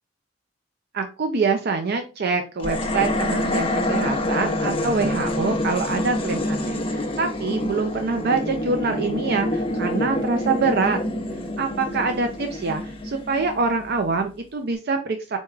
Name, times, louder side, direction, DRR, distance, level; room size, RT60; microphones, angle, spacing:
voice 1, 0.9-11.0 11.6-15.4, right 4 dB, 55° right, 5 dB, 0.5 m, -25 dB
sound 1, 2.6-14.0, left 1 dB, 30° left, 0.7 m, -27 dB
4.5 x 4.2 x 2.4 m, 0.32 s
head